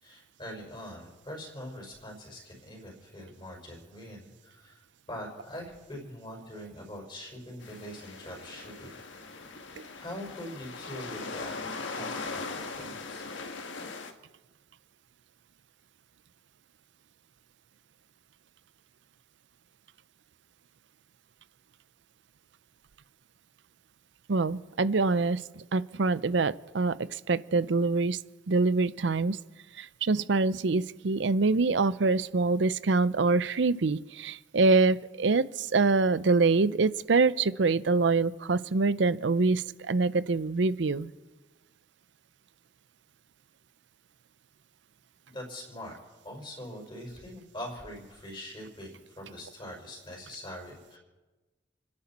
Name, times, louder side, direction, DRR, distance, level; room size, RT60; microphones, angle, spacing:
voice 1, 0.0-4.8 5.1-9.0 9.9-13.3 45.3-45.9 46.2-51.0, left 1 dB, 25° left, -2 dB, 5.0 m, -43 dB
sound 1, 7.6-14.1, left 3 dB, 75° left, 1.5 m, -40 dB
voice 2, 24.3-28.2 28.5-29.4 29.8-41.1, right 3 dB, 70° right, 16 dB, 0.6 m, -25 dB
29.5 x 10.5 x 4.3 m, 1.2 s
head